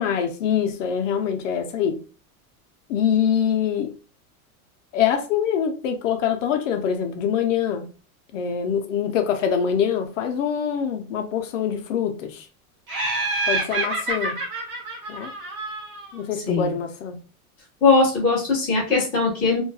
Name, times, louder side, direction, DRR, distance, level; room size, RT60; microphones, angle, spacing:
voice 1, 0.0-2.0 2.9-3.9 4.9-7.9 8.3-12.5 13.5-14.4 15.1-15.3 16.1-17.2, left 8 dB, 60° left, 0.5 m, -24 dB
Laughter, 12.9-16.2, right 2 dB, 65° right, 1.3 m, -27 dB
voice 2, 17.8-19.6, left 4 dB, 5° left, 0.4 m, -20 dB
2.3 x 2.2 x 2.6 m
supercardioid pair, 180°, 44 cm